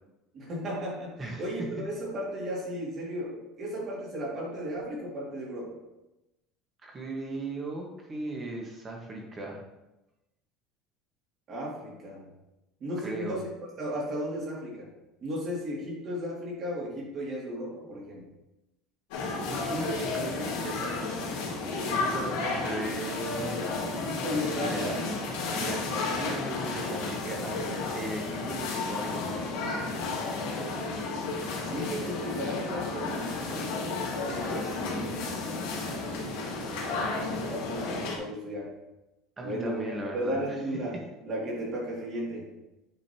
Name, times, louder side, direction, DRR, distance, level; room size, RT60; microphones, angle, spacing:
voice 1, 0.3-5.8 11.5-12.3 12.8-13.5 13.8-14.9 15.2-18.2 23.8-25.1 25.5-26.4 31.2-33.8 35.7-36.4 37.1-38.7 39.4-42.5, equal, 35° right, -3 dB, 2.2 m, -35 dB
voice 2, 1.2-1.7 6.8-9.6 13.0-13.4 19.5-21.1 21.9-23.6 24.5-25.0 25.5-29.4 34.2-35.1 39.4-40.3, right 2 dB, 15° right, 0 dB, 1.3 m, -37 dB
sound 1, 19.1-38.2, left 3 dB, 85° left, 1.9 m, -32 dB
9.1 x 5.1 x 2.8 m, 0.96 s
cardioid pair, 170°, 0 cm